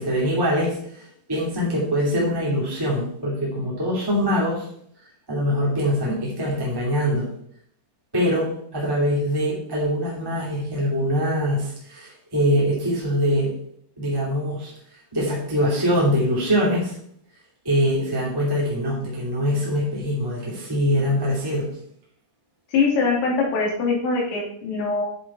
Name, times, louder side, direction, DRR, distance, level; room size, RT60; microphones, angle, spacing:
voice 1, 0.0-4.7 5.3-7.3 8.1-13.5 14.0-14.7 15.1-16.9 17.6-21.7, equal, 10° right, -5 dB, 1.5 m, -23 dB
voice 2, 22.7-25.0, left 4 dB, 75° left, -3 dB, 5.0 m, -22 dB
10.0 x 7.3 x 4.4 m, 0.66 s
omnidirectional pair, 5.3 m